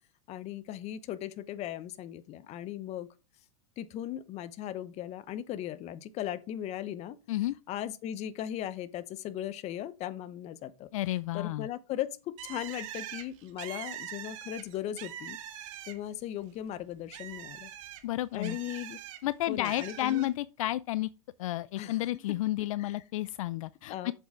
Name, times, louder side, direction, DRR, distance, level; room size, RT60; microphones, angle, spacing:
voice 1, 0.3-3.1 3.8-7.2 7.7-10.9 11.3-15.4 15.9-17.7 18.3-19.0 19.5-20.3 21.8-22.0 22.8-23.0 23.9-24.1, left 11 dB, 40° left, 1.0 m, -38 dB
voice 2, 10.9-11.7 18.0-18.6 19.2-21.1 21.4-24.1, left 15 dB, 70° left, 0.4 m, -31 dB
Bird, 12.4-16.2 16.6-19.2 19.6-20.3, right 11 dB, 60° right, 2.0 m, -43 dB
8.1 x 7.3 x 3.8 m
hypercardioid pair, 110°, 18 cm